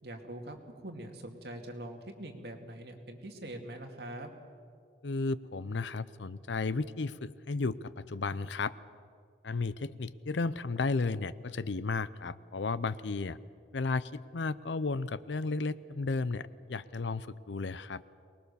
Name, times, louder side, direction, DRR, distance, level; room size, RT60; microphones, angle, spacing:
voice 1, 0.0-4.3, right 1 dB, 60° right, 3 dB, 2.3 m, -43 dB
voice 2, 5.0-8.7 9.4-13.4 13.7-18.0, left 3 dB, 80° left, 17 dB, 0.6 m, -33 dB
23.5 x 20.0 x 7.0 m, 2.2 s
head